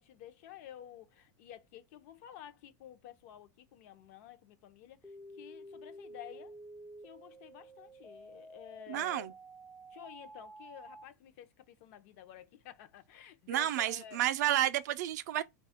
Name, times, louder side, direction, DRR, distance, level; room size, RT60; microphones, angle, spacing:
voice 1, 0.0-6.6 7.0-9.3 9.9-14.3, left 11 dB, 55° left, 0.5 m, -52 dB
sound 1, 5.0-11.0, right 1 dB, ahead, 0.3 m, -51 dB
voice 2, 8.9-9.3 13.5-15.4, right 12 dB, 75° right, 0.4 m, -31 dB
2.7 x 2.3 x 4.1 m
supercardioid pair, 145°, 9 cm